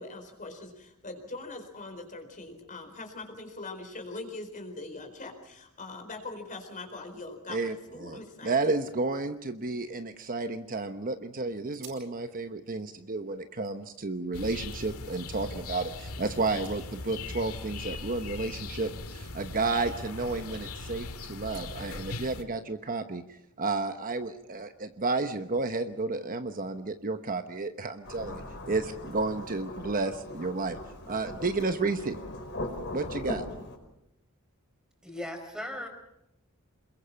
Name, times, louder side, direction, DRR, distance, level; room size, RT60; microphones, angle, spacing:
voice 1, 0.0-8.6, left 2 dB, 40° left, 5 dB, 4.4 m, -42 dB
voice 2, 7.5-23.2 23.6-30.8 31.1-32.2 32.9-33.4, right 3 dB, 40° right, 8 dB, 1.0 m, -32 dB
sound 1, 8.6-10.8 11.2-11.3 11.7-12.2 12.6-14.0 14.6-14.8 16.2-17.3 17.6-19.4 19.7-19.9 20.3-20.4 21.3-22.0, right 7 dB, 70° right, 7.8 m, -57 dB
sound 2, 14.3-22.4, left 3 dB, 80° left, 1.9 m, -40 dB
Thunderstorm / Rain, 28.0-33.8, left 1 dB, 55° left, 5.0 m, -39 dB
voice 3, 35.0-35.9, left 1 dB, 5° right, 5 dB, 4.7 m, -37 dB
27.5 x 22.0 x 5.9 m, 0.83 s
head